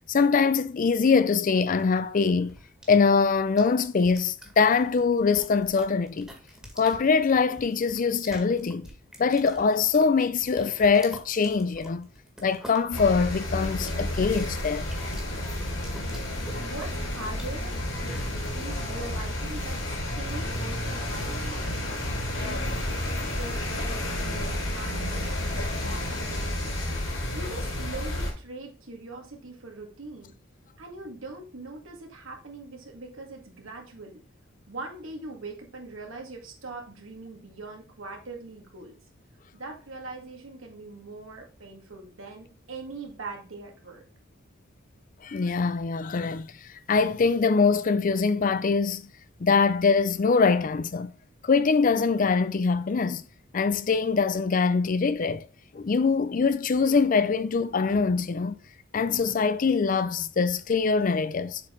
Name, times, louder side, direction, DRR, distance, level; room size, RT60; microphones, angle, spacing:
voice 1, 0.0-2.6 2.9-6.3 6.8-8.9 9.2-12.1 12.4-14.9 45.2-49.1 49.4-51.1 51.4-53.2 53.5-55.4 55.7-58.5 58.9-61.6, left 5 dB, 40° left, 0.4 m, -23 dB
sound 1, 1.5-18.6, equal, 5° right, 1.8 m, -46 dB
sound 2, 12.9-28.3, left 1 dB, 65° left, 3.3 m, -31 dB
voice 2, 16.6-17.7 18.5-21.9 22.3-22.8 23.3-26.7 27.3-30.3 30.8-34.2 34.7-39.0 39.5-44.0, right 3 dB, 75° right, 2.1 m, -42 dB
7.3 x 4.7 x 3.8 m
head